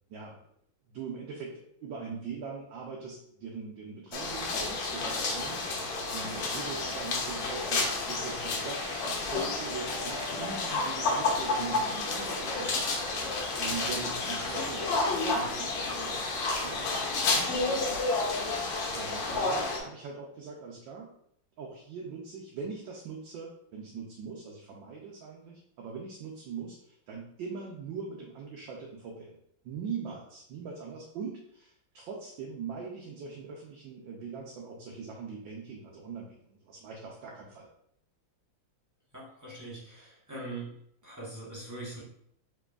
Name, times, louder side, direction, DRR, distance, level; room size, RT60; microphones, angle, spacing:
voice 1, 0.9-13.0 13.3-21.1 21.6-29.4 29.6-37.7, right 5 dB, 75° right, -1 dB, 1.4 m, -42 dB
sound 1, 4.1-19.8, left 3 dB, 75° left, 1.5 m, -30 dB
voice 2, 39.1-40.7 41.0-42.0, right 2 dB, 25° right, -7 dB, 0.4 m, -42 dB
4.9 x 3.8 x 2.4 m, 0.70 s
omnidirectional pair, 2.1 m